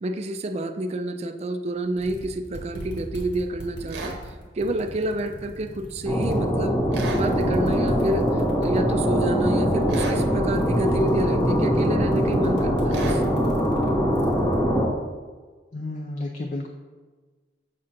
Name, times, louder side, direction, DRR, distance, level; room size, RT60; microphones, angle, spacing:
voice 1, 0.0-4.1 4.5-6.8 7.1-8.3 8.6-13.2, right 1 dB, 35° right, 6 dB, 0.4 m, -29 dB
sound 1, 1.7-1.8 2.0-6.6 7.0-14.6, right 1 dB, 80° left, 1.5 m, -40 dB
sound 2, 3.9-4.2 6.9-7.3 9.9-10.2 12.9-13.2, right 3 dB, 80° right, 0.8 m, -33 dB
sound 3, 6.1-14.9, equal, 10° left, 0.9 m, -22 dB
voice 2, 15.7-16.7, left 2 dB, 45° left, 2 dB, 0.4 m, -31 dB
7.4 x 2.5 x 5.8 m, 1.4 s
head